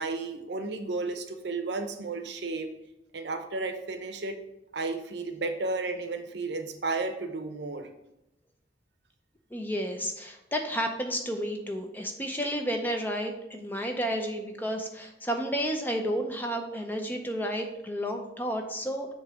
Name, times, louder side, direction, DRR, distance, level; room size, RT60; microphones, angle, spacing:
voice 1, 0.0-2.7 3.1-4.4 4.7-7.9, right 3 dB, 70° right, 6 dB, 0.7 m, -33 dB
voice 2, 9.5-19.1, equal, 10° left, 3 dB, 0.5 m, -31 dB
7.1 x 3.0 x 4.9 m, 0.89 s
head